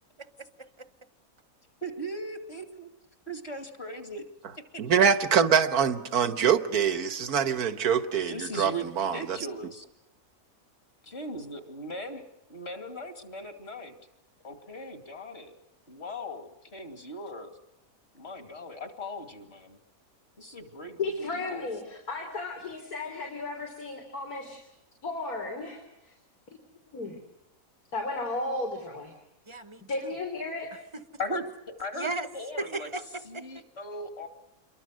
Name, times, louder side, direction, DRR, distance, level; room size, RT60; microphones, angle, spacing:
voice 1, 0.2-0.9 29.5-30.1 30.9-31.0 31.9-32.3 32.6-33.5, right 2 dB, 25° right, 0.8 m, -36 dB
voice 2, 1.8-2.9 3.3-4.2 4.5-4.6 8.3-9.8 11.1-12.2 12.5-14.0 14.4-15.5 15.9-17.6 18.1-19.8 20.4-21.6 31.2-31.5 31.8-32.9 33.2-34.3, equal, 45° left, 2.7 m, -38 dB
voice 3, 4.8-9.4, right 7 dB, 90° right, 1.8 m, -24 dB
voice 4, 21.0-24.7 25.0-26.1 26.5-26.6 26.9-27.2 27.9-29.1 29.9-30.7, left 2 dB, 80° left, 3.8 m, -34 dB
28.0 x 23.0 x 6.4 m
omnidirectional pair, 1.5 m